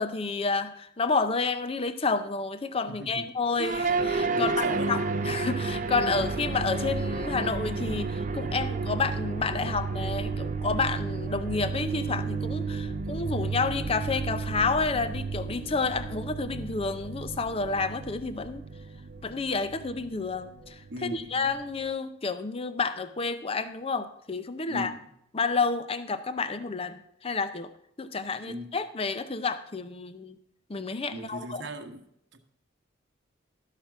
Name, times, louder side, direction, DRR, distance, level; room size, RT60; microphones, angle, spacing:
voice 1, 0.0-5.0 5.3-18.6 19.2-20.8 21.0-24.9 25.3-27.7 28.0-30.4 30.7-31.6, left 4 dB, 30° left, 12 dB, 0.5 m, -30 dB
voice 2, 2.9-3.3 4.3-5.0 20.9-21.6 24.7-25.1 28.5-28.7 31.1-32.0 32.3-32.4, right 1 dB, 60° right, 6 dB, 1.1 m, -38 dB
sound 1, 3.6-21.9, right 4 dB, 40° right, 0.6 m, -32 dB
12.5 x 5.8 x 5.9 m, 0.73 s
head